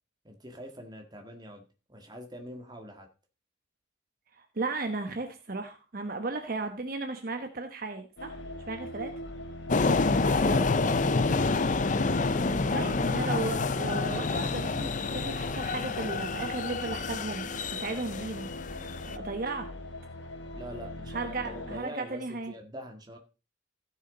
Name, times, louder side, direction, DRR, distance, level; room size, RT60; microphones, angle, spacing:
voice 1, 0.2-3.1 10.1-11.6 20.5-23.2, equal, 20° right, 4 dB, 1.8 m, -44 dB
voice 2, 4.4-8.4 8.7-9.1 12.7-18.5 19.0-19.7 21.1-22.5, right 3 dB, 50° right, 6 dB, 1.1 m, -35 dB
sound 1, 8.2-21.8, equal, 75° left, 1.2 m, -41 dB
sound 2, 9.7-19.2, left 3 dB, 40° left, 0.6 m, -28 dB
15.0 x 6.5 x 3.9 m, 0.32 s
head